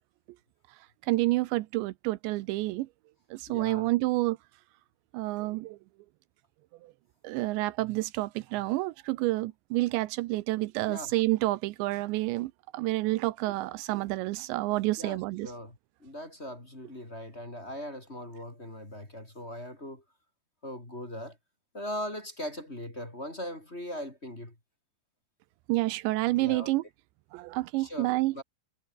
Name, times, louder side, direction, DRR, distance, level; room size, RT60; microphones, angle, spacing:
voice 1, 1.0-2.9 3.3-4.4 5.1-5.8 6.8-6.9 7.2-15.5 25.7-26.8 27.3-28.3, right 19 dB, 80° right, 3.0 m, -29 dB
voice 2, 3.5-3.9 10.9-11.1 15.0-20.0 20.6-21.4 21.7-24.5 26.3-26.7 27.8-28.4, equal, 15° left, 4.1 m, -40 dB
omnidirectional pair, 5.1 m